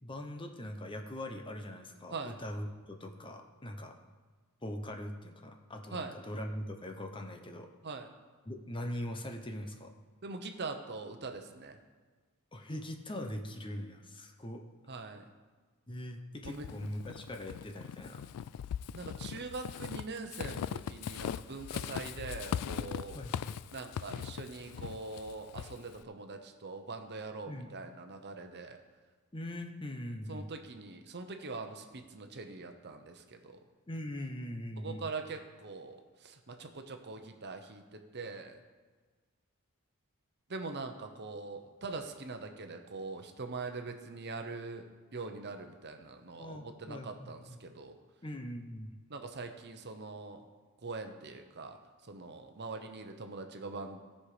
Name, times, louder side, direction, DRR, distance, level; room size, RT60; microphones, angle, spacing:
voice 1, 0.0-4.0 4.6-7.7 8.5-9.9 12.5-14.6 15.9-18.2 22.2-22.3 23.1-23.6 27.5-27.7 29.3-30.5 33.9-35.1 46.4-47.6 48.2-48.9, left 1 dB, 25° left, 4 dB, 0.8 m, -41 dB
voice 2, 10.2-11.8 14.9-15.2 16.4-16.6 18.9-23.2 23.7-28.8 30.3-33.6 34.8-38.6 40.5-44.8 45.1-47.9 49.1-50.4 50.8-51.8 52.0-54.0, right 3 dB, 50° right, 5 dB, 1.0 m, -43 dB
Walk footsteps / Squeak, 16.4-26.0, left 9 dB, 80° left, 0.3 m, -40 dB
17.0 x 5.7 x 5.0 m, 1.4 s
head